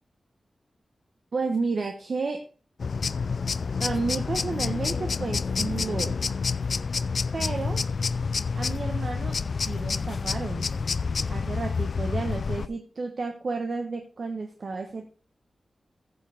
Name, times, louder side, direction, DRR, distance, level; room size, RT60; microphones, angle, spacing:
voice 1, 1.3-2.4 3.8-6.2 7.3-7.9 8.6-10.7 11.3-15.1, right 4 dB, 55° right, 4 dB, 1.1 m, -31 dB
sound 1, 2.8-12.7, left 5 dB, 60° left, 0.4 m, -28 dB
14.5 x 7.1 x 3.5 m, 0.38 s
wide cardioid pair, 135°, 0 cm